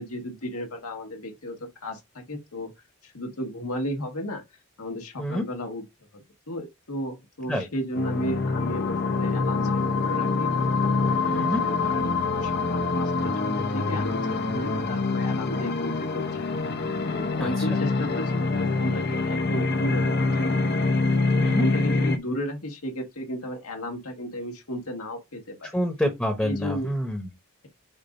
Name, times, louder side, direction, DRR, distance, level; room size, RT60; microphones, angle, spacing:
voice 1, 0.0-2.7 3.0-4.4 4.8-5.8 6.1-10.5 10.9-14.2 14.5-16.4 17.1-20.5 21.0-25.7 26.4-26.9, equal, 85° left, 1.6 m, -34 dB
sound 1, 7.9-22.2, left 3 dB, 50° left, 0.7 m, -25 dB
voice 2, 11.3-11.6 17.4-17.7 21.4-21.7 25.7-27.3, equal, 5° left, 1.1 m, -27 dB
7.0 x 2.6 x 5.3 m
head